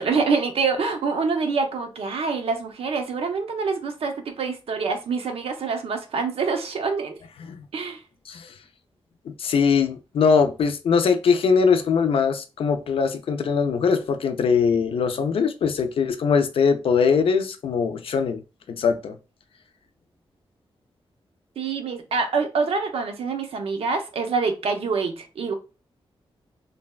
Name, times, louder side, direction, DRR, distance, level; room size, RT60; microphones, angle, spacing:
voice 1, 0.0-7.2 7.7-8.0 21.6-25.5, right 4 dB, 75° right, 0.6 m, -26 dB
voice 2, 9.3-18.4 18.7-19.2, left 6 dB, 70° left, 0.4 m, -21 dB
3.2 x 2.2 x 2.2 m
wide cardioid pair, 155°, 10 cm